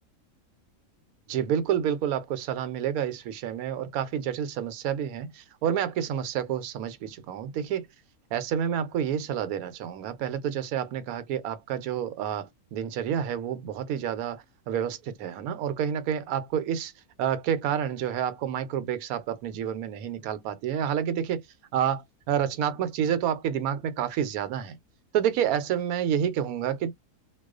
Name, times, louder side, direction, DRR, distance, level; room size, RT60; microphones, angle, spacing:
voice 1, 1.3-7.9 8.3-16.9 17.2-21.4 21.7-24.8 25.1-26.9, right 9 dB, 80° right, 1.0 m, -29 dB
2.3 x 2.2 x 2.3 m
omnidirectional pair, 1.5 m